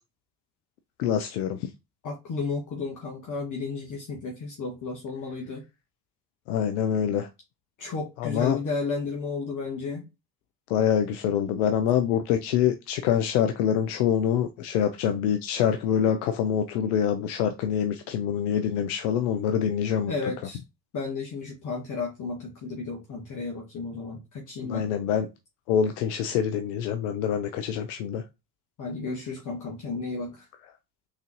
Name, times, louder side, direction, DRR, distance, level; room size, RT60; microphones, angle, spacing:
voice 1, 1.0-1.7 6.5-7.3 8.2-8.6 10.7-20.1 24.6-25.3 25.7-28.2, left 8 dB, 70° left, 0.5 m, -25 dB
voice 2, 2.0-5.6 7.8-10.1 20.1-20.6 20.9-24.9 28.8-30.5, left 4 dB, 40° left, 1.1 m, -33 dB
3.6 x 3.1 x 2.6 m
figure-of-eight pair, 55°, 47 cm